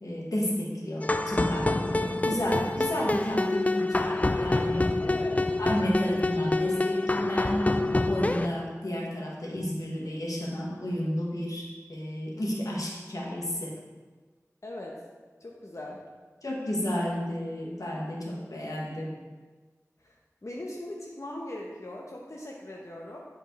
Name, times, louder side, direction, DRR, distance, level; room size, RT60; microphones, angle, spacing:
voice 1, 0.0-5.0 5.6-13.7 16.4-19.1, equal, 90° left, -3 dB, 1.3 m, -31 dB
sound 1, 1.0-8.5, left 2 dB, 25° left, 0.3 m, -27 dB
voice 2, 5.0-5.5 14.6-15.0 15.4-16.0 20.0-20.2 20.4-23.2, left 1 dB, 60° left, -2 dB, 0.8 m, -40 dB
10.5 x 4.4 x 3.1 m, 1.4 s
wide cardioid pair, 40°, 6 cm